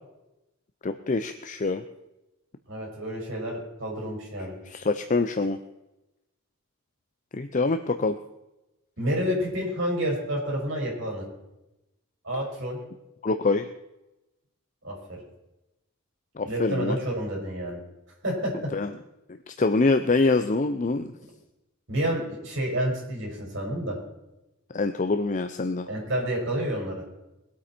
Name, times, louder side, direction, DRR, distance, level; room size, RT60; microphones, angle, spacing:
voice 1, 0.8-1.8 4.7-5.6 7.3-8.2 13.2-13.7 16.4-17.0 18.7-18.9 19.3-21.1 24.7-25.9, left 3 dB, 35° left, 9 dB, 0.5 m, -25 dB
voice 2, 2.7-4.5 9.0-11.2 12.2-12.8 14.8-15.2 16.4-17.8 18.2-18.7 21.9-24.0 25.9-27.0, equal, 60° right, -2 dB, 5.6 m, -29 dB
22.0 x 8.5 x 4.5 m, 0.94 s
head